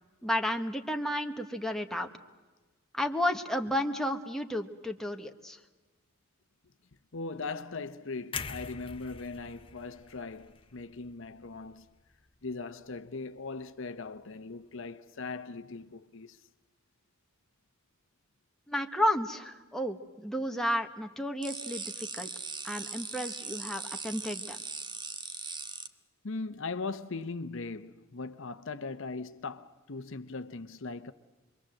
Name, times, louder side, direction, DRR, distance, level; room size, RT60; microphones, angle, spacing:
voice 1, 0.2-2.1 2.9-5.6 18.7-22.3 22.6-24.6, equal, ahead, 1.2 m, -32 dB
voice 2, 7.1-11.9 12.4-16.4 26.2-31.1, left 3 dB, 65° left, 0.9 m, -39 dB
sound 1, 8.3-12.3 12.7-12.9, left 5 dB, 25° left, 0.9 m, -44 dB
sound 2, 21.4-25.9, right 5 dB, 20° right, 1.0 m, -40 dB
26.5 x 23.0 x 7.7 m
head